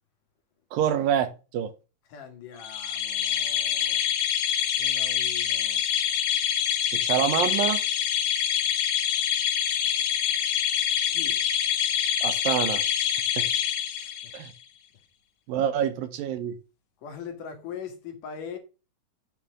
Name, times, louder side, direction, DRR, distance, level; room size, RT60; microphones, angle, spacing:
voice 1, 0.7-1.7 6.9-7.8 12.2-12.8 13.4-13.5 14.3-14.5 15.5-16.6, right 9 dB, 75° right, 2.6 m, -26 dB
voice 2, 2.1-4.0 4.8-5.8 11.1-11.4 14.0-14.3 17.0-18.6, left 7 dB, 65° left, 3.1 m, -41 dB
sound 1, 2.6-14.5, left 9 dB, 85° left, 2.9 m, -26 dB
9.0 x 4.3 x 7.1 m
omnidirectional pair, 4.2 m